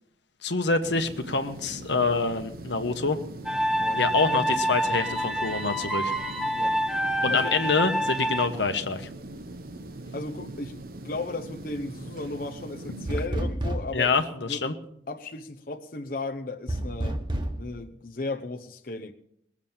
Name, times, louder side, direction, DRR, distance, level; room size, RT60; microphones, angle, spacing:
voice 1, 0.4-3.2 4.0-6.1 7.2-9.1 13.9-14.7, left 4 dB, 85° left, 7 dB, 1.3 m, -26 dB
sound 1, 0.8-13.3, right 1 dB, 55° right, 0.8 m, -41 dB
sound 2, 3.5-8.5, equal, 5° right, 1.0 m, -27 dB
voice 2, 10.1-10.7 11.0-14.2 14.5-14.6 15.1-17.2 17.6-19.1, left 2 dB, 50° left, 4 dB, 0.8 m, -35 dB
sound 3, 13.1-14.0 16.7-17.6, right 1 dB, 25° right, 1.3 m, -29 dB
20.5 x 7.4 x 7.3 m, 0.72 s
head